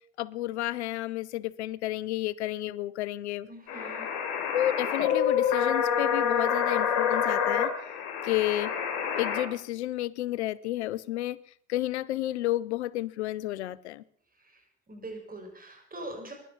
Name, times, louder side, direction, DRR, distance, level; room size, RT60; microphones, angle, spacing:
voice 1, 0.2-3.5 4.5-7.7 8.2-8.7 9.2-11.4 11.7-14.0, left 15 dB, 90° left, 0.5 m, -31 dB
voice 2, 3.5-4.1 14.4-16.3, right 1 dB, 25° right, 6.9 m, -43 dB
sound 1, 3.7-9.4, left 7 dB, 70° left, 4.1 m, -27 dB
16.0 x 11.5 x 7.1 m
hypercardioid pair, 60°, 33 cm